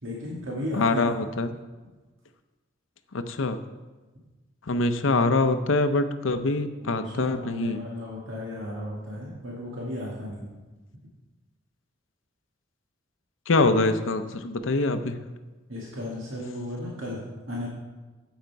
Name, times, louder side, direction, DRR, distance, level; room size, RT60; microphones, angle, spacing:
voice 1, 0.0-1.1 6.8-10.5 15.7-17.7, left 1 dB, 80° right, -4 dB, 1.9 m, -34 dB
voice 2, 0.7-1.5 3.1-3.6 4.7-7.8 13.5-15.2, left 3 dB, 75° left, 9 dB, 0.7 m, -24 dB
9.2 x 7.9 x 4.6 m, 1.2 s
head